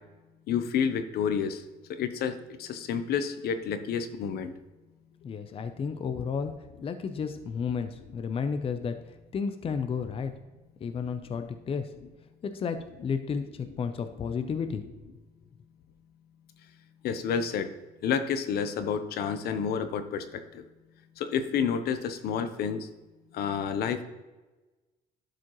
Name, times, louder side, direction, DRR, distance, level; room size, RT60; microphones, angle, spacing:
voice 1, 0.5-1.6 2.0-2.3 2.6-4.5 17.0-17.7 18.0-20.2 21.3-22.8 23.4-24.0, left 7 dB, 70° left, 9 dB, 0.7 m, -29 dB
voice 2, 5.2-6.5 6.8-9.0 9.3-10.3 10.8-11.9 12.4-12.8 13.0-13.5 13.8-14.8, left 6 dB, 35° left, 9 dB, 0.5 m, -32 dB
12.0 x 5.0 x 3.0 m, 1.2 s
cardioid pair, 110°, 17 cm